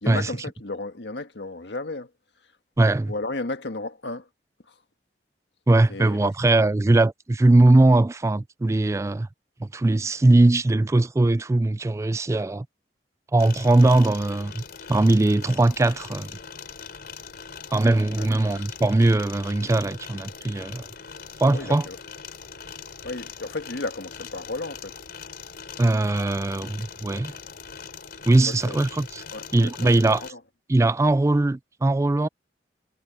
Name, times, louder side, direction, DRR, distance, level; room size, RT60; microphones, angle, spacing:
voice 1, 0.0-2.1 3.1-4.3 4.7-4.8 5.9-6.3 18.2-18.3 21.5-22.0 23.0-24.9 28.6-28.8 29.3-30.4, left 2 dB, 80° left, 1.6 m, -33 dB
voice 2, 2.8-3.1 5.7-9.3 9.6-12.7 13.3-14.6 14.9-16.4 17.7-20.8 21.4-21.9 25.8-27.3 28.3-29.2 29.5-30.2 30.7-32.3, right 2 dB, 15° right, 0.3 m, -20 dB
sound 1, 13.4-30.3, left 6 dB, 60° left, 4.0 m, -41 dB
head